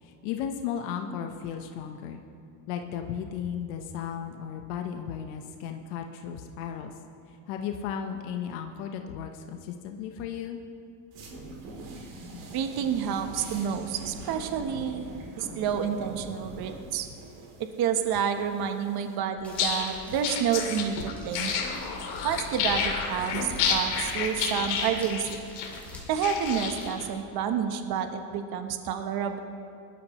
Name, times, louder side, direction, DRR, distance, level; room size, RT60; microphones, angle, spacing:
voice 1, 0.0-2.2 2.7-6.9 7.3-10.6 12.3-12.5, left 8 dB, 75° left, 4 dB, 1.2 m, -35 dB
sound 1, 11.1-19.2, right 2 dB, 70° right, 3.3 m, -43 dB
voice 2, 12.5-15.0 15.4-17.1 17.6-21.6 22.2-25.4 26.1-29.4, right 8 dB, 45° right, 7 dB, 1.1 m, -29 dB
sound 2, 19.4-27.0, left 6 dB, 55° left, 2.4 m, -30 dB
sound 3, 19.4-27.2, left 1 dB, 5° left, 3.3 m, -50 dB
20.0 x 12.5 x 3.1 m, 2.4 s
supercardioid pair, 125°, 49 cm